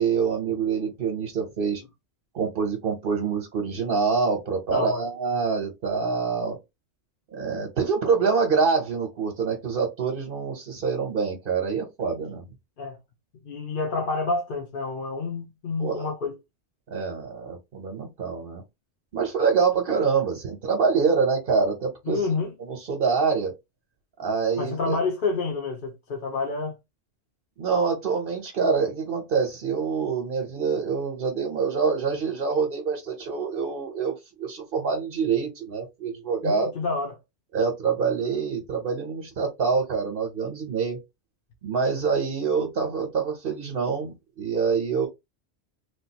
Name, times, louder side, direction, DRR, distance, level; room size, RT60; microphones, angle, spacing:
voice 1, 0.0-1.8 2.3-6.6 7.3-12.4 15.8-16.1 16.9-18.6 19.1-22.3 22.6-23.5 24.2-25.0 27.6-36.7 37.5-41.0 41.6-45.1, right 5 dB, 55° right, 1.0 m, -26 dB
voice 2, 4.7-5.1 12.8-13.0 13.4-16.4 22.1-22.5 24.6-26.8 36.4-37.1, left 3 dB, 55° left, 0.9 m, -28 dB
3.3 x 2.5 x 2.8 m
omnidirectional pair, 1.2 m